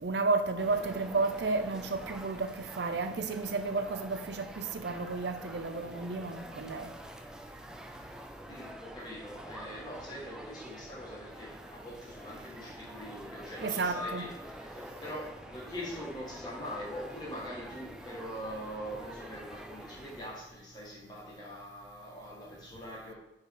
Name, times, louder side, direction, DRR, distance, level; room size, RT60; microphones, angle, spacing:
voice 1, 0.0-6.9 13.6-14.2, right 3 dB, 65° right, 0.6 m, -32 dB
sound 1, 0.6-20.5, equal, 5° right, 0.4 m, -47 dB
voice 2, 8.5-23.1, equal, 25° left, 1.9 m, -43 dB
4.8 x 4.6 x 4.9 m
head